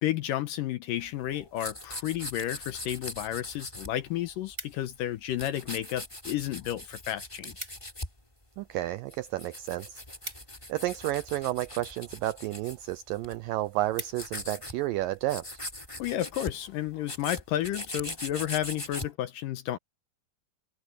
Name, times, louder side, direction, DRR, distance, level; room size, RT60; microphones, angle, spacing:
voice 1, 0.0-7.5 16.0-19.8, left 12 dB, 75° left, 2.1 m, -32 dB
sound 1, 1.0-4.7 5.0-8.2 8.8-13.4 13.7-14.7 15.0-15.1 15.3-19.1, left 1 dB, 10° left, 2.8 m, -41 dB
sound 2, 4.2-5.2 5.9-6.4 6.7-6.8 7.1-7.2 7.4-8.0 8.4-11.2 11.9-12.3 12.8-12.9 13.2-13.3 13.6-14.6 15.1-15.3, right 2 dB, 15° right, 5.5 m, -45 dB
voice 2, 8.6-10.0 10.7-15.5, right 15 dB, 85° right, 2.0 m, -31 dB
omnidirectional pair, 4.6 m